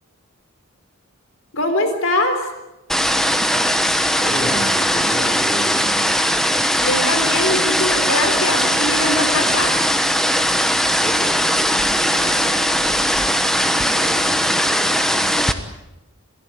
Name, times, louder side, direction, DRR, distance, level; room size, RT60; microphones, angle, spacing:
voice 1, 1.5-2.4 6.8-9.7, left 1 dB, 65° left, 6 dB, 3.8 m, -22 dB
sound 1, 2.9-15.5, equal, ahead, 1.2 m, -19 dB
voice 2, 4.2-6.2 11.0-15.5, equal, 20° left, 2 dB, 4.9 m, -32 dB
28.0 x 17.0 x 9.5 m, 0.97 s
head